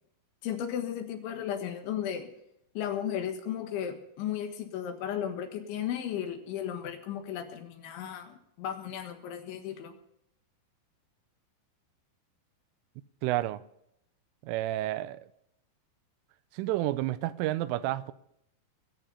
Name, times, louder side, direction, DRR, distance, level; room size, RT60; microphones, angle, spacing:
voice 1, 0.4-2.3 2.8-9.9, left 9 dB, 75° left, 3.8 m, -35 dB
voice 2, 13.2-13.6 14.4-15.2 16.5-18.1, right 15 dB, 85° right, 3.2 m, -30 dB
21.0 x 9.1 x 5.6 m
omnidirectional pair, 5.6 m